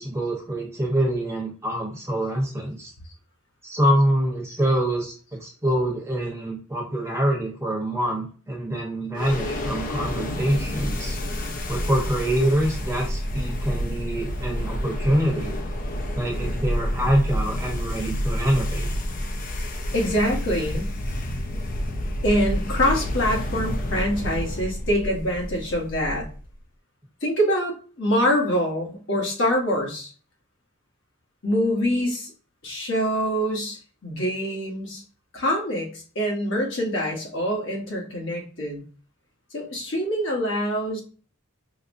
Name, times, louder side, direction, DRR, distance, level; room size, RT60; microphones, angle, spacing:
voice 1, 0.0-2.9 3.6-11.2 11.7-15.5 16.1-18.9, right 1 dB, 10° right, -1 dB, 0.9 m, -25 dB
sound 1, 9.1-26.5, equal, 35° left, 0.4 m, -29 dB
voice 2, 19.9-20.9 22.2-26.2 27.2-30.1 31.4-32.3 32.6-35.0 35.3-38.8 39.5-41.0, equal, 55° left, -1 dB, 1.1 m, -25 dB
5.1 x 2.0 x 2.5 m, 0.39 s
head